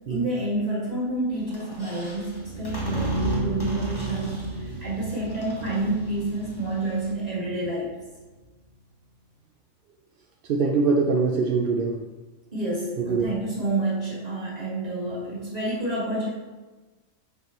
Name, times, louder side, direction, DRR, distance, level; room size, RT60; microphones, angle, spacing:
voice 1, 0.1-7.9 12.5-16.3, right 2 dB, 30° right, -6 dB, 2.0 m, -29 dB
Squeak, 1.3-7.1, equal, 20° left, 1.0 m, -43 dB
sound 1, 2.3-8.3, right 2 dB, 80° right, 1.3 m, -32 dB
voice 2, 10.5-12.0 13.0-13.3, right 4 dB, 60° right, 0 dB, 0.6 m, -23 dB
6.5 x 5.2 x 3.1 m, 1.2 s
omnidirectional pair, 1.4 m